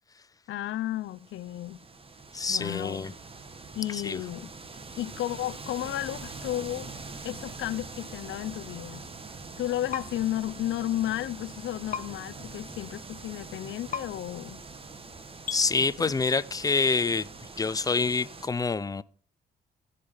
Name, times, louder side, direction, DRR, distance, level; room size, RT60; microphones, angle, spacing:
voice 1, 0.5-1.8 2.5-3.1 3.7-4.5 5.0-6.9 7.2-9.1 9.6-14.6 16.0-16.1, left 14 dB, 75° left, 0.6 m, -33 dB
sound 1, 0.9-18.5, right 3 dB, 30° right, 1.4 m, -44 dB
voice 2, 2.3-3.1 4.0-4.2 15.5-17.3 17.6-19.0, left 4 dB, 20° left, 0.6 m, -26 dB
sound 2, 9.9-10.1 11.9-12.0 13.9-14.0 15.5-15.6, left 7 dB, 40° left, 1.0 m, -32 dB
15.0 x 5.2 x 5.6 m
cardioid pair, 90°, 20 cm